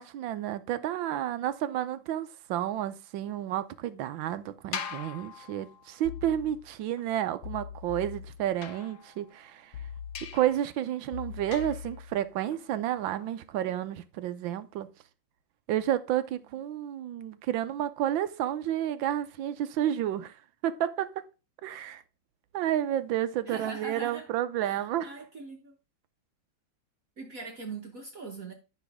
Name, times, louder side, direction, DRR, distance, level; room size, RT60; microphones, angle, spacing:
voice 1, 0.0-9.8 10.3-14.9 15.7-20.4 20.6-21.3 21.6-22.0 22.5-25.1, right 11 dB, 75° right, 1.3 m, -31 dB
sound 1, 4.7-6.1 8.6-9.5 10.1-10.6 11.5-12.0, left 7 dB, 60° left, 1.3 m, -41 dB
sound 2, 6.0-7.0 7.4-8.9 9.7-10.7 11.1-12.6 13.0-13.4, left 8 dB, 80° left, 1.6 m, -43 dB
voice 2, 23.5-24.3 24.6-25.7 27.2-28.5, right 3 dB, 50° right, 1.3 m, -41 dB
10.5 x 5.9 x 3.5 m
omnidirectional pair, 2.3 m